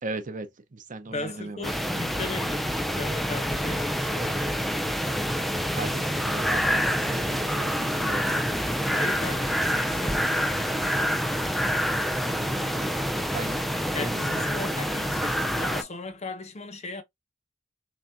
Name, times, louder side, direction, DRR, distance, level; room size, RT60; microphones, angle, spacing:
voice 1, 0.0-1.7 5.7-8.4 11.7-13.0 13.3-14.5, right 3 dB, 40° right, 0.6 m, -38 dB
voice 2, 1.1-5.0 8.9-10.4 13.9-17.0, left 3 dB, 35° left, 0.7 m, -37 dB
sound 1, 1.6-15.8, equal, ahead, 0.4 m, -27 dB
3.6 x 3.4 x 2.6 m
head